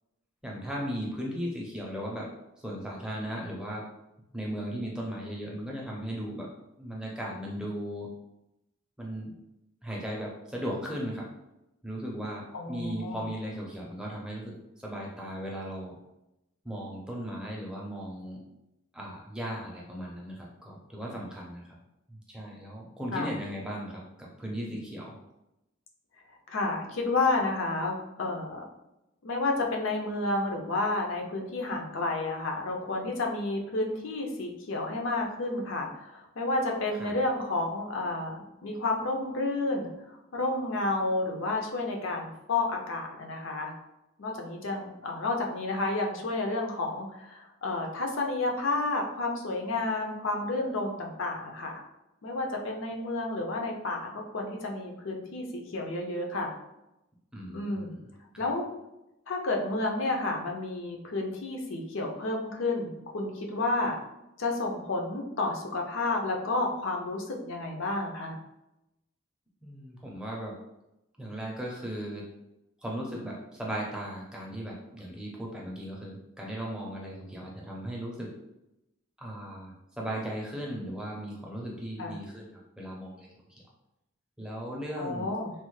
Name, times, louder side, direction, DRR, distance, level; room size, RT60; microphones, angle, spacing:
voice 1, 0.4-2.3 2.6-3.9 4.3-6.5 6.8-8.1 9.0-9.3 9.8-11.3 11.8-16.0 16.6-18.4 18.9-21.8 22.1-25.2 37.0-37.1 57.3-58.0 58.3-58.5 69.6-70.6 71.2-72.3 72.8-78.3 79.2-83.6 84.4-85.3, equal, 5° right, -3 dB, 0.5 m, -37 dB
voice 2, 12.5-13.2 23.1-23.3 26.5-28.6 29.2-39.9 40.3-43.7 44.2-51.8 52.2-56.6 57.5-58.0 58.4-58.7 59.3-64.0 64.4-68.4 82.0-82.2 85.0-85.5, left 2 dB, 65° left, 1 dB, 0.5 m, -31 dB
3.2 x 2.0 x 3.1 m, 0.90 s
head